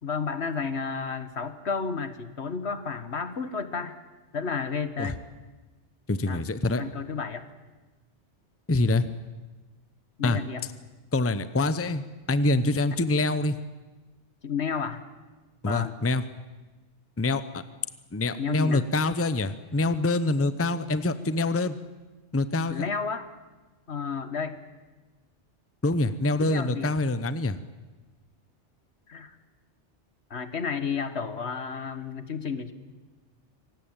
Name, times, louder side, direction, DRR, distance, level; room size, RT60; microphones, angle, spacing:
voice 1, 0.0-4.0 4.3-5.2 6.3-7.4 10.2-10.6 14.4-15.0 15.7-15.9 18.4-18.8 22.7-23.3 23.9-24.5 26.4-26.9 29.1-29.4 30.3-32.7, left 5 dB, 65° left, 11 dB, 1.7 m, -32 dB
voice 2, 6.1-6.8 8.7-9.1 10.2-10.4 11.1-12.0 12.3-13.6 15.6-16.2 17.2-17.6 18.1-21.8 22.3-22.9 25.8-27.6, left 2 dB, 15° left, 13 dB, 0.7 m, -25 dB
25.0 x 18.5 x 9.0 m, 1.2 s
omnidirectional pair, 1.2 m